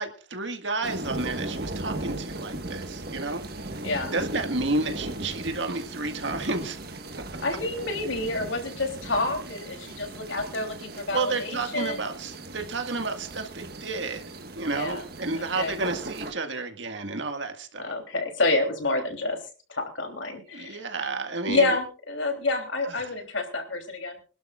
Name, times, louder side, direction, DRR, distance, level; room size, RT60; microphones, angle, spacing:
voice 1, 0.0-3.7 4.1-6.8 11.1-14.3 14.6-17.9 20.5-21.8 22.9-23.1, right 3 dB, 70° right, 6 dB, 1.9 m, -31 dB
sound 1, 0.8-16.3, right 2 dB, 55° right, 1.6 m, -38 dB
voice 2, 3.8-4.1 7.4-12.0 14.7-15.0 15.4-15.7 17.8-19.4 19.7-20.8 21.5-24.2, left 2 dB, 75° left, 4 dB, 3.4 m, -28 dB
26.0 x 12.0 x 2.5 m, 0.36 s
head